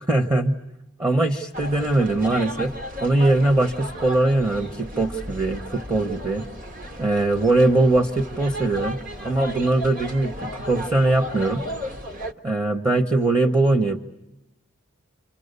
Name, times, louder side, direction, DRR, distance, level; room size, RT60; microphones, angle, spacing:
voice 1, 0.1-0.6 1.0-2.7 3.0-6.4 7.0-11.6 12.4-14.0, right 2 dB, 15° right, 5 dB, 1.1 m, -21 dB
sound 1, 1.5-12.3, equal, 40° right, 1.4 m, -35 dB
29.5 x 27.0 x 6.8 m, 0.92 s
head